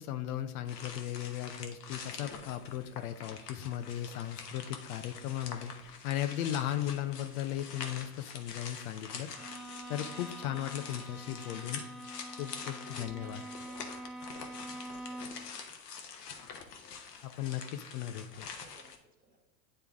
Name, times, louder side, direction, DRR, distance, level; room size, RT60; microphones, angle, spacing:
voice 1, 0.0-9.3 9.9-11.8 12.4-13.4 17.2-18.5, left 12 dB, 65° left, 9 dB, 0.7 m, -37 dB
sound 1, 0.7-19.0, left 6 dB, 85° left, 1.0 m, -46 dB
Bowed string instrument, 9.3-15.5, right 1 dB, ahead, 0.9 m, -45 dB
voice 2, 12.3-15.9 18.6-19.5, right 1 dB, 20° right, 2 dB, 1.5 m, -60 dB
9.6 x 3.4 x 3.5 m, 0.88 s
hypercardioid pair, 95°, 47 cm